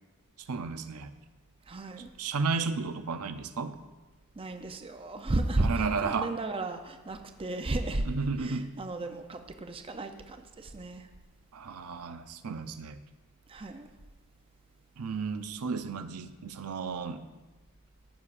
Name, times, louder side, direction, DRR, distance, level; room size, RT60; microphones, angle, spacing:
voice 1, 0.5-1.1 2.2-3.8 5.6-6.3 8.0-8.7 11.5-13.0 15.0-17.2, right 4 dB, 85° right, 10 dB, 0.5 m, -33 dB
voice 2, 1.7-2.1 4.3-8.1 8.4-11.1 13.5-13.9, right 2 dB, 25° right, 6 dB, 0.5 m, -34 dB
14.0 x 7.0 x 2.5 m, 1.2 s
head